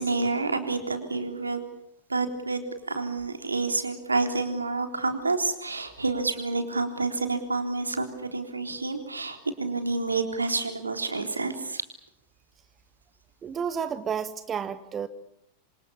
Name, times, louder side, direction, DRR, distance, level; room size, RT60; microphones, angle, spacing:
voice 1, 0.0-1.7 2.1-11.8, right 3 dB, 80° right, 6 dB, 3.7 m, -29 dB
voice 2, 13.4-15.1, right 7 dB, 25° right, 12 dB, 1.6 m, -31 dB
27.0 x 27.0 x 7.2 m, 0.77 s
figure-of-eight pair, 90°, 0 cm